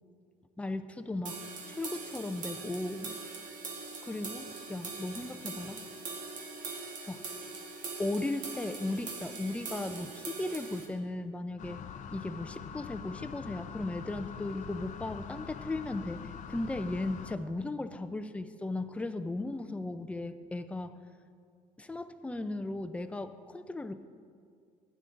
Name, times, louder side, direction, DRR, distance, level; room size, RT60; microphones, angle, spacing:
voice 1, 0.6-1.4 1.7-3.2 4.0-5.8 7.1-7.2 8.0-11.8 12.1-21.0 21.8-23.9, left 2 dB, 10° left, 9 dB, 0.5 m, -36 dB
sound 1, 1.3-10.9, right 4 dB, 60° right, 1.4 m, -42 dB
sound 2, 11.6-17.4, left 7 dB, 60° left, 0.5 m, -44 dB
15.5 x 9.2 x 2.5 m, 2.2 s
cardioid pair, 110°, 15 cm